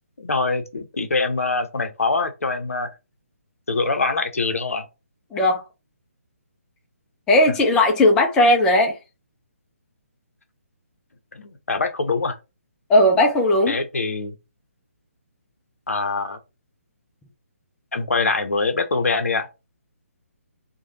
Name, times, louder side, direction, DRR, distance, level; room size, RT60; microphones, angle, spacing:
voice 1, 0.2-2.9 3.7-4.9 11.3-12.3 13.7-14.3 15.9-16.4 17.9-19.5, left 3 dB, 70° left, 0.6 m, -24 dB
voice 2, 5.3-5.6 7.3-8.9 12.9-13.7, left 1 dB, 10° left, 0.3 m, -17 dB
3.1 x 2.1 x 2.7 m
figure-of-eight pair, 140°, 8 cm